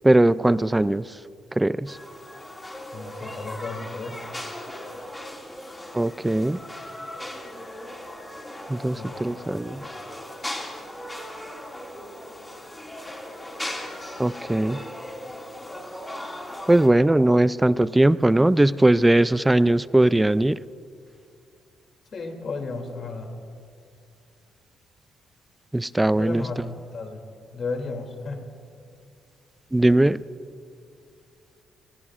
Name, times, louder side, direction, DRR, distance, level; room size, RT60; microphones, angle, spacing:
voice 1, 0.0-1.1 1.6-2.0 5.9-6.6 8.7-9.8 14.2-14.8 16.7-20.6 25.7-26.5 29.7-30.2, right 1 dB, 10° right, 17 dB, 0.3 m, -19 dB
sound 1, 1.9-16.9, left 1 dB, 15° left, 2.3 m, -38 dB
voice 2, 2.9-4.2 8.9-9.1 9.5-9.6 22.1-23.3 26.2-27.2 27.5-28.4, left 3 dB, 50° left, 4 dB, 2.7 m, -33 dB
25.5 x 21.0 x 2.5 m, 2.4 s
cardioid pair, 90°, 0 cm